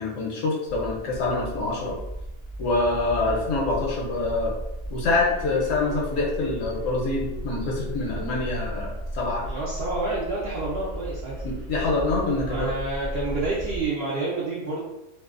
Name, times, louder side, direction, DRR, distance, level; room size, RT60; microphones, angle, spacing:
voice 1, 0.0-2.0 2.6-4.5 4.9-9.4 11.4-12.7, left 3 dB, 70° left, -2 dB, 1.0 m, -26 dB
sound 1, 0.7-13.9, right 1 dB, 45° left, 0.4 m, -35 dB
voice 2, 9.4-11.3 12.4-14.8, right 2 dB, 65° right, -6 dB, 0.6 m, -29 dB
2.6 x 2.1 x 2.4 m, 0.92 s
omnidirectional pair, 1.5 m